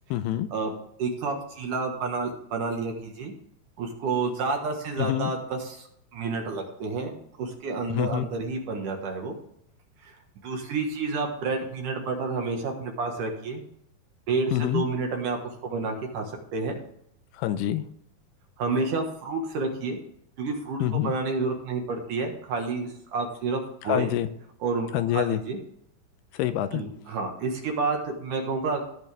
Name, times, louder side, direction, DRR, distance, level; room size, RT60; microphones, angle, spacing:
voice 1, 0.1-0.5 5.0-5.3 7.9-8.3 14.5-14.8 17.4-17.8 20.8-21.1 23.9-24.3 24.9-25.4 26.3-26.8, left 13 dB, 80° left, 11 dB, 2.6 m, -26 dB
voice 2, 1.0-3.3 3.8-5.9 6.1-9.4 10.0-10.2 10.4-13.6 14.3-16.8 18.6-20.0 20.4-24.1 24.6-25.6 26.7-28.8, right 4 dB, 60° right, 3 dB, 2.6 m, -30 dB
18.0 x 6.3 x 3.5 m, 0.72 s
omnidirectional pair, 4.8 m